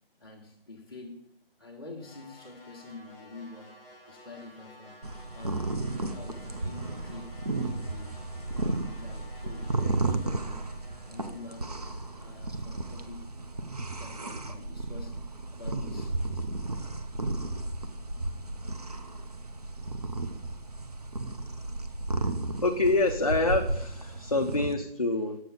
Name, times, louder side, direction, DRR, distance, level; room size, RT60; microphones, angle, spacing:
voice 1, 0.2-1.3 1.6-3.8 4.1-5.0 5.3-5.8 6.1-7.4 7.7-8.2 8.5-10.7 11.1-11.8 12.2-13.4 14.0-15.2 15.5-16.2, left 3 dB, 25° left, 1.0 m, -47 dB
sound 1, 2.0-14.2, left 1 dB, 5° right, 1.6 m, -53 dB
sound 2, 5.0-24.7, right 2 dB, 40° right, 0.6 m, -34 dB
voice 2, 22.6-25.4, left 2 dB, 40° left, 0.4 m, -26 dB
7.6 x 6.7 x 3.9 m
figure-of-eight pair, 175°, 30 cm